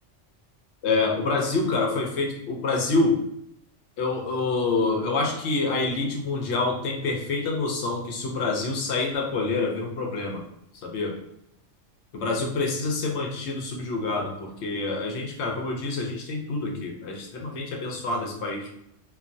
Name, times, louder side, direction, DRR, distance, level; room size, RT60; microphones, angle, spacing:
voice 1, 0.8-3.2 4.0-10.4 10.8-11.2 12.1-18.7, left 3 dB, 70° left, 1 dB, 0.8 m, -27 dB
3.1 x 2.2 x 2.6 m, 0.76 s
omnidirectional pair, 1.2 m